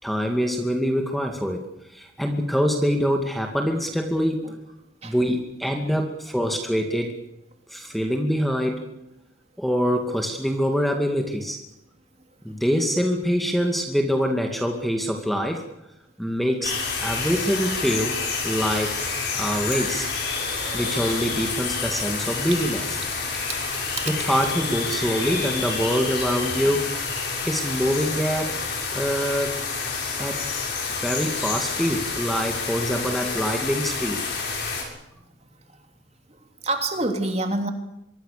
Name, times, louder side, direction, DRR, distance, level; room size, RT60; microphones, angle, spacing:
voice 1, 0.0-4.5 5.0-7.1 7.7-8.9 9.6-11.6 12.4-15.6 16.2-18.2 18.4-19.0 19.3-20.1 20.7-22.8 24.1-27.0 27.4-28.6 28.9-29.5 30.2-30.4 31.0-34.2, equal, ahead, 3 dB, 2.3 m, -25 dB
sound 1, 16.6-34.8, left 4 dB, 55° left, 7.4 m, -28 dB
voice 2, 36.6-37.7, right 2 dB, 30° right, 5 dB, 3.1 m, -27 dB
24.5 x 22.5 x 6.9 m, 0.87 s
head